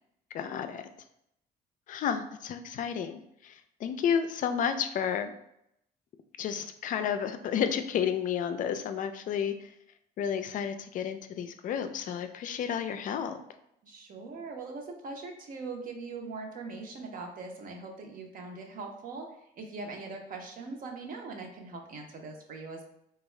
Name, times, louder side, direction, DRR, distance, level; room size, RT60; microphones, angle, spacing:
voice 1, 0.3-0.8 1.9-5.3 6.4-9.7 10.2-13.4, left 8 dB, 50° left, 9 dB, 0.4 m, -31 dB
voice 2, 13.8-19.3 19.6-22.8, right 3 dB, 55° right, 2 dB, 0.7 m, -41 dB
3.5 x 2.3 x 3.1 m, 0.78 s
cardioid pair, 110°, 17 cm